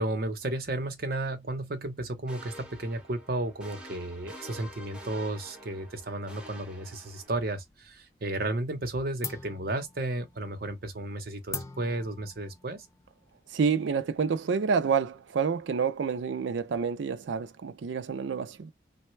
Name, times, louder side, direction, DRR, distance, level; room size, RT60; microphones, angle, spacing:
voice 1, 0.0-12.9, right 2 dB, 55° right, 0.8 m, -33 dB
sound 1, 2.3-7.6, equal, 5° right, 0.9 m, -48 dB
sound 2, 7.3-8.2 8.5-8.9 9.2-14.4, left 4 dB, 15° left, 0.4 m, -44 dB
voice 2, 13.5-18.7, right 6 dB, 75° right, 0.4 m, -28 dB
3.2 x 2.2 x 3.1 m
head